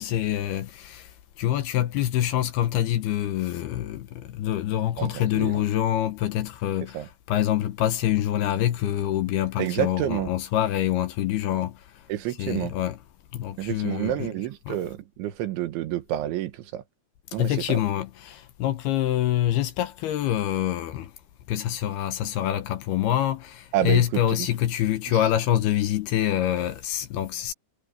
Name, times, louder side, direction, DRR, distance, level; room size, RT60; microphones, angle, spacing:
voice 1, 0.0-11.8 12.4-13.0 13.3-14.3 14.7-14.8 17.4-21.1 21.5-27.5, left 12 dB, 70° left, 2.7 m, -26 dB
voice 2, 5.0-5.6 6.9-7.1 9.6-10.3 12.1-12.7 13.6-16.8 17.3-17.8 23.7-24.5 25.1-25.2, right 12 dB, 85° right, 3.8 m, -29 dB
omnidirectional pair, 5.3 m